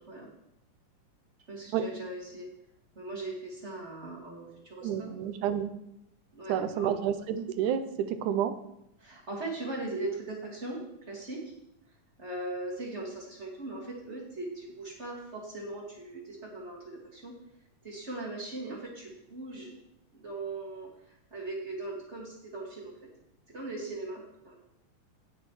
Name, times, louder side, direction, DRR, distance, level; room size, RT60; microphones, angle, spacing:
voice 1, 1.5-2.5 3.0-5.1 6.3-6.9 9.0-10.8 11.1-11.4 12.2-17.3 17.8-19.7 20.1-20.9 21.3-22.9 23.5-24.5, right 2 dB, 25° right, -3 dB, 2.0 m, -39 dB
voice 2, 4.8-5.7 6.5-8.6, right 9 dB, 85° right, 11 dB, 2.2 m, -30 dB
17.5 x 6.2 x 3.2 m, 0.81 s
omnidirectional pair, 3.5 m